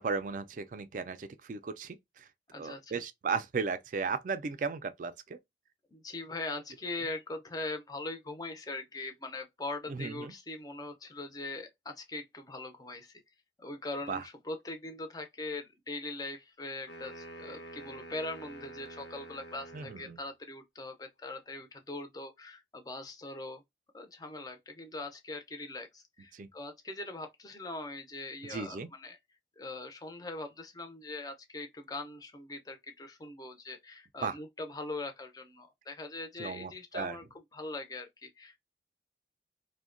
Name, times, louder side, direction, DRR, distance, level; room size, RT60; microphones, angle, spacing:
voice 1, 0.0-2.3 2.6-5.4 9.9-10.3 14.1-14.2 19.7-20.2 26.3-26.5 28.4-28.9 34.2-34.4 36.4-37.2, right 5 dB, 45° right, 0.3 m, -36 dB
voice 2, 2.5-3.0 5.9-13.1 13.6-23.6 23.9-29.2 29.6-38.6, left 2 dB, 20° left, 0.5 m, -41 dB
sound 1, 16.9-20.2, right 1 dB, 80° left, 0.8 m, -47 dB
2.7 x 2.1 x 2.4 m
head